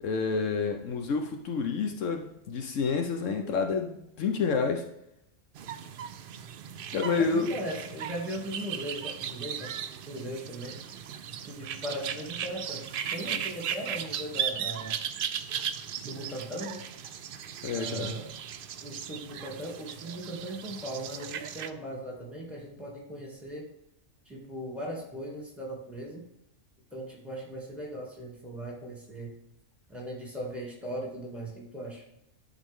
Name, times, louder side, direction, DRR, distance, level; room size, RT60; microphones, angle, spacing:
voice 1, 0.0-4.9 6.9-7.5 17.6-18.2, left 5 dB, 75° left, 4 dB, 1.1 m, -29 dB
sound 1, 5.6-21.7, right 8 dB, 65° right, 0.6 m, -37 dB
voice 2, 7.2-9.7 10.1-10.7 11.5-15.0 16.0-16.8 17.7-18.3 18.8-23.7 24.3-26.2 26.9-29.3 29.9-32.0, right 1 dB, ahead, -3 dB, 2.3 m, -38 dB
11.5 x 4.0 x 3.6 m, 0.83 s
omnidirectional pair, 1.3 m